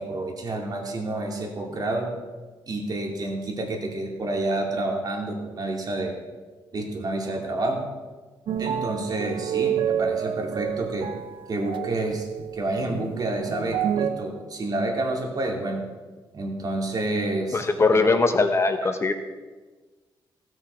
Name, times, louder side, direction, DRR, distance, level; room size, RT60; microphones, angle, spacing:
voice 1, 0.0-2.1 2.7-6.1 6.7-7.8 8.6-11.1 11.5-12.3 12.5-15.8 16.3-17.6, right 2 dB, 45° right, 1 dB, 2.5 m, -29 dB
sound 1, 8.5-14.1, right 9 dB, 75° right, 0.7 m, -29 dB
voice 2, 17.5-19.1, left 3 dB, 30° left, 7 dB, 0.9 m, -21 dB
16.5 x 6.2 x 4.5 m, 1.3 s
cardioid pair, 80°, 9 cm